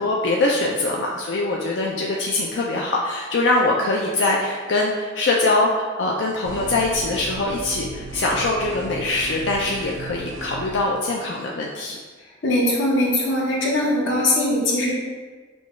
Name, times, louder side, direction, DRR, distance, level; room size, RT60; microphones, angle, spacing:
voice 1, 0.0-12.0, left 2 dB, 65° left, -2 dB, 0.4 m, -23 dB
sound 1, 6.4-10.8, right 3 dB, 90° right, 0.4 m, -36 dB
voice 2, 12.4-14.9, left 1 dB, 90° left, -3 dB, 1.0 m, -21 dB
6.2 x 2.3 x 3.1 m, 1.4 s
head